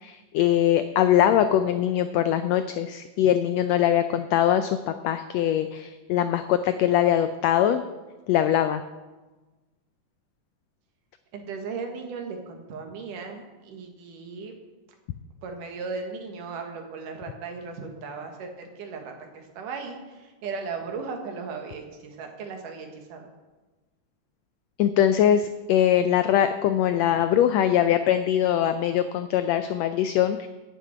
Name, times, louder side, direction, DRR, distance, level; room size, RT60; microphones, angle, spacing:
voice 1, 0.0-7.8 8.3-8.8 24.8-30.5, left 10 dB, 85° left, 10 dB, 1.5 m, -22 dB
voice 2, 11.3-14.5 15.4-19.1 19.6-23.3, right 4 dB, 85° right, 3 dB, 3.1 m, -36 dB
9.3 x 7.4 x 8.9 m, 1.2 s
omnidirectional pair, 3.6 m